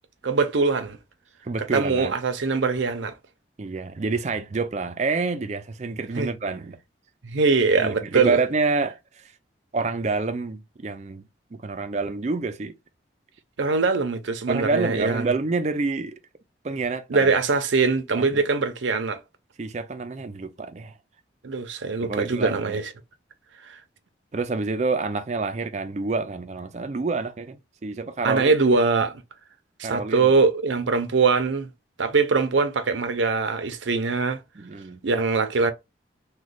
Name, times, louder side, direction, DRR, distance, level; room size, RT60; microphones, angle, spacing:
voice 1, 0.2-1.0 1.7-3.1 6.1-6.3 7.2-8.4 13.6-15.3 17.1-19.2 21.4-22.9 23.6-23.8 28.2-29.2 29.8-31.7 32.0-34.4 35.0-35.7, right 4 dB, 90° right, 0.6 m, -22 dB
voice 2, 1.4-2.1 3.6-6.8 7.8-9.3 9.7-11.2 11.5-12.7 14.5-16.1 16.6-17.3 18.2-18.4 19.6-20.9 22.0-22.8 24.3-28.5 29.8-30.3 34.6-35.0, right 3 dB, 40° right, 0.4 m, -28 dB
3.1 x 2.3 x 3.9 m
head